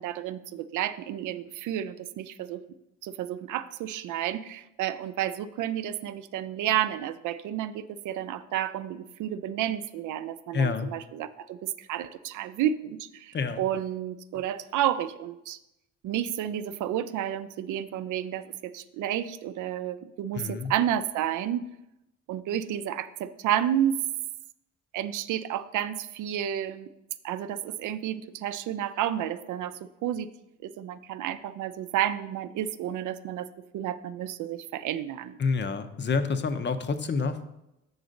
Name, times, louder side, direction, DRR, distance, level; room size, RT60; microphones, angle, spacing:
voice 1, 0.0-2.6 3.0-15.6 16.0-21.6 22.3-24.0 24.9-26.9 27.2-30.3 30.6-33.5 33.7-35.4, right 11 dB, 85° right, 12 dB, 0.5 m, -31 dB
voice 2, 10.5-10.9 13.3-13.6 20.3-20.7 35.4-37.4, left 4 dB, 35° left, 10 dB, 0.6 m, -28 dB
6.9 x 4.0 x 6.4 m, 0.89 s
cardioid pair, 90°, 30 cm